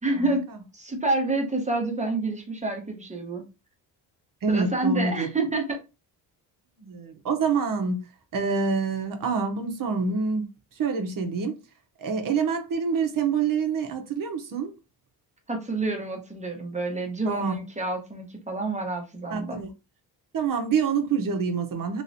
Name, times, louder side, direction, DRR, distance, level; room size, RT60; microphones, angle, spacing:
voice 1, 0.0-0.5 0.7-3.4 4.5-5.8 15.5-19.6, right 2 dB, 15° right, 1.0 m, -28 dB
voice 2, 4.4-5.3 6.8-8.0 8.3-10.5 10.8-11.6 12.0-14.7 17.2-17.6 19.3-19.7 20.3-22.0, right 5 dB, 50° right, 0.9 m, -26 dB
3.1 x 2.9 x 2.7 m
cardioid pair, 100°, 43 cm